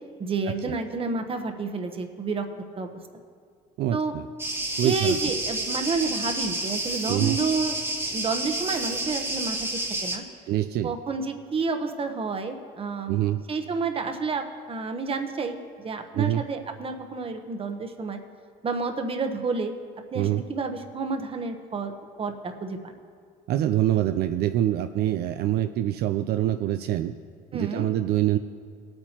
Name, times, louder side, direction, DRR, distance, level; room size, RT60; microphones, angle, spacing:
voice 1, 0.2-2.4 2.8-2.9 3.9-4.2 4.8-7.8 8.1-9.6 10.0-10.2 10.8-13.2 13.5-15.6 15.8-18.2 18.6-19.7 20.1-21.9 22.2-22.9 27.5-27.9, right 4 dB, 35° right, 6 dB, 1.0 m, -29 dB
voice 2, 3.8-4.3 4.8-5.2 7.1-7.4 10.5-10.9 13.1-13.4 16.1-16.4 20.1-20.4 23.5-27.1 27.5-28.4, right 13 dB, 70° right, 8 dB, 0.4 m, -25 dB
sound 1, 4.4-10.2, right 2 dB, 15° right, 1.2 m, -30 dB
19.0 x 8.8 x 2.9 m, 2.2 s
cardioid pair, 110°, 17 cm